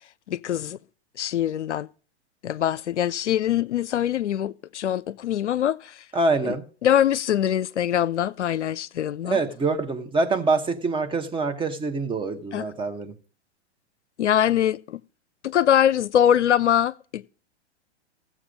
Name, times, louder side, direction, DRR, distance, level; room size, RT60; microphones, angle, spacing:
voice 1, 0.3-0.8 1.2-1.9 2.4-6.0 6.4-6.6 6.8-9.4 12.5-12.7 14.2-15.0 15.4-17.3, left 10 dB, 80° left, 0.5 m, -23 dB
voice 2, 6.1-6.6 9.2-13.1, right 3 dB, 15° right, 1.0 m, -25 dB
15.0 x 7.5 x 5.2 m
figure-of-eight pair, 105°, 35 cm